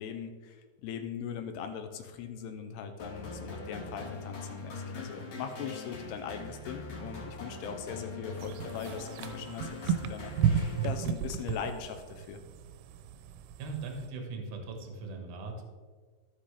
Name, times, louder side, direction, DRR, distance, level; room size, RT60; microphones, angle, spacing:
voice 1, 0.0-12.4, left 7 dB, 80° left, 6 dB, 2.6 m, -40 dB
sound 1, 3.0-11.3, left 3 dB, 50° left, 2.5 m, -42 dB
sound 2, 8.4-14.1, right 8 dB, 90° right, 2.8 m, -33 dB
voice 2, 13.6-15.6, right 3 dB, 70° right, 3 dB, 1.5 m, -39 dB
15.0 x 5.7 x 3.3 m, 1.5 s
omnidirectional pair, 4.9 m